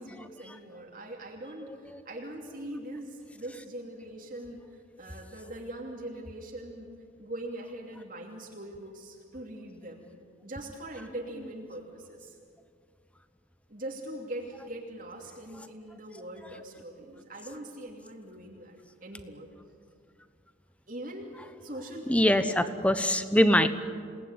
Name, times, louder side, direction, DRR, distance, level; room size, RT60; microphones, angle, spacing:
voice 1, 0.0-6.9 7.2-10.1 10.4-12.3 13.7-19.5 20.9-21.3 21.6-22.9, right 1 dB, 45° right, -1 dB, 2.9 m, -42 dB
voice 2, 22.1-23.7, equal, 5° left, 10 dB, 1.0 m, -23 dB
28.0 x 19.5 x 9.6 m, 2.2 s
head